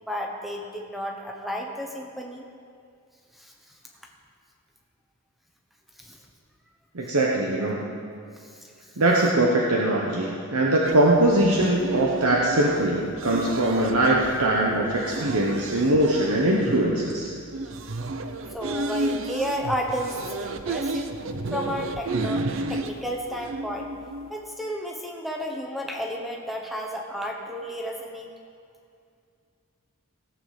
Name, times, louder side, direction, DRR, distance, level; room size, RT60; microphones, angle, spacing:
voice 1, 0.0-2.4 3.3-3.5 6.0-6.2 8.4-8.9 18.5-21.1 21.5-22.4 22.7-23.9 24.3-28.3, equal, ahead, 1 dB, 1.0 m, -32 dB
voice 2, 6.9-7.9 9.0-17.3, right 1 dB, 85° right, -2 dB, 1.1 m, -22 dB
sound 1, 10.8-24.3, right 2 dB, 60° right, 0.6 m, -32 dB
16.5 x 8.0 x 5.1 m, 2.4 s
head